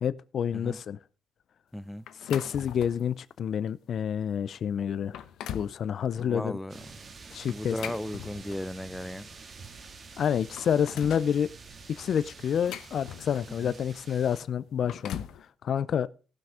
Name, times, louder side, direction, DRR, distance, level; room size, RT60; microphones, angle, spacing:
voice 1, 0.0-1.0 2.2-5.2 5.5-6.6 7.3-7.8 10.2-11.5 11.9-15.2 15.6-16.1, left 8 dB, 60° left, 0.4 m, -28 dB
voice 2, 1.7-2.0 6.2-6.8 7.5-9.3 13.5-13.8, equal, 5° left, 0.5 m, -36 dB
sound 1, 2.1-3.1 3.7-3.8 4.5-4.6 5.0-5.8 7.5-8.8 9.9-10.0 10.3-11.3 12.2-13.6 14.6-15.4, left 10 dB, 80° left, 0.8 m, -41 dB
sound 2, 6.7-14.4, right 4 dB, 45° right, 2.0 m, -48 dB
16.0 x 6.1 x 4.8 m
cardioid pair, 90°, 0 cm